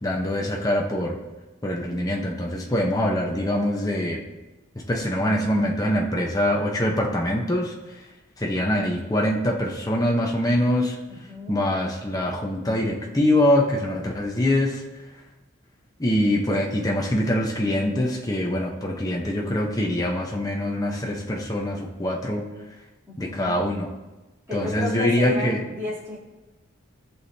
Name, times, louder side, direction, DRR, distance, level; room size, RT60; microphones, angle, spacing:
voice 1, 0.0-1.2 1.6-4.2 4.9-7.7 8.4-11.0 11.5-14.8 16.0-22.4 23.2-23.9 24.5-25.6, left 1 dB, 20° left, -1 dB, 1.0 m, -24 dB
voice 2, 11.1-11.6 23.1-23.6 24.5-26.2, left 2 dB, 15° right, -9 dB, 3.2 m, -33 dB
18.0 x 6.3 x 2.8 m, 1.1 s
head